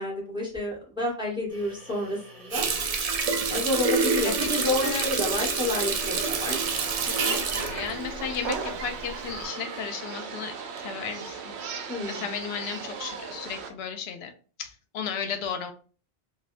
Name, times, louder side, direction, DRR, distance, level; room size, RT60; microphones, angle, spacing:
voice 1, 0.0-2.7 3.5-6.6 11.9-12.2, left 1 dB, 5° right, -1 dB, 0.9 m, -29 dB
sound 1, 1.5-7.4, equal, 35° right, 1.4 m, -49 dB
Water tap faucet, 2.5-8.9 9.3-9.5, right 5 dB, 55° right, 0.4 m, -27 dB
voice 2, 4.2-5.1 7.1-14.3 14.6-15.7, left 7 dB, 75° left, 7 dB, 0.8 m, -35 dB
sound 2, 6.0-13.7, right 5 dB, 90° right, 0.8 m, -37 dB
3.3 x 2.3 x 2.4 m, 0.40 s
omnidirectional pair, 1.1 m